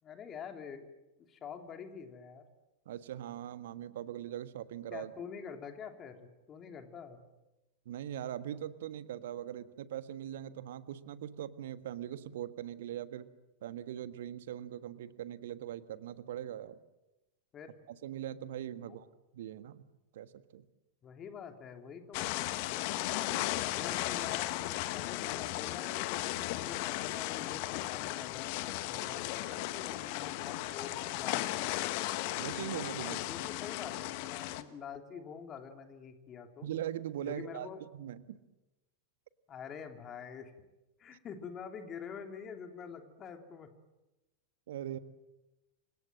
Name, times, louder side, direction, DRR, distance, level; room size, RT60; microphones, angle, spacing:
voice 1, 0.0-0.9 1.3-2.4 4.9-7.2 17.5-17.7 18.8-19.0 21.0-22.8 23.6-26.2 26.5-31.9 33.0-36.7 37.2-37.8 39.5-40.5 41.0-43.7, left 7 dB, 25° left, 6 dB, 3.2 m, -46 dB
voice 2, 2.8-5.1 7.8-13.3 13.6-16.8 17.9-19.1 19.3-19.9 20.1-20.6 23.3-23.6 32.4-33.2 36.6-38.4 44.7-45.0, right 11 dB, 55° right, 13 dB, 1.5 m, -41 dB
sound 1, 22.1-34.6, left 17 dB, 45° left, 1.5 m, -36 dB
29.5 x 25.5 x 7.7 m, 1.0 s
figure-of-eight pair, 90°, 0 cm